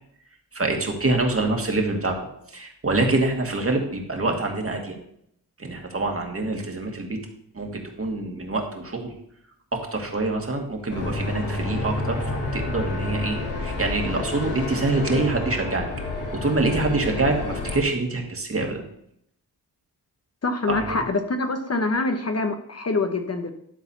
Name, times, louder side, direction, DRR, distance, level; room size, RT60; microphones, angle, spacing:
voice 1, 0.5-2.2 2.5-4.9 5.6-7.2 7.5-9.1 9.7-15.9 16.3-18.8 20.7-20.9, right 2 dB, 35° right, 2 dB, 2.3 m, -25 dB
sound 1, 10.9-17.8, left 2 dB, 85° left, 3.5 m, -29 dB
voice 2, 20.4-23.5, left 3 dB, 40° left, 6 dB, 1.2 m, -25 dB
12.0 x 4.0 x 7.2 m, 0.71 s
cardioid pair, 70°, 39 cm